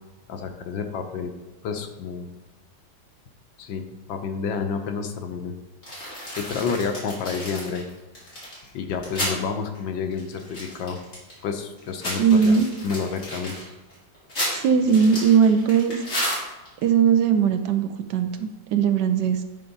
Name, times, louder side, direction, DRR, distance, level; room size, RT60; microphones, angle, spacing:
voice 1, 0.3-1.3 1.6-2.3 3.6-3.8 4.1-5.5 6.4-7.9 8.7-11.0 11.4-12.5 12.8-13.5, left 5 dB, 75° left, 5 dB, 1.6 m, -29 dB
sound 1, 5.8-9.4 9.8-9.9 10.1-11.4 11.8-16.8, equal, 40° left, 3.6 m, -32 dB
voice 2, 12.2-12.7 14.5-16.3 16.8-19.4, right 6 dB, 70° right, 8 dB, 1.2 m, -20 dB
9.9 x 4.5 x 5.4 m, 1.1 s
omnidirectional pair, 2.1 m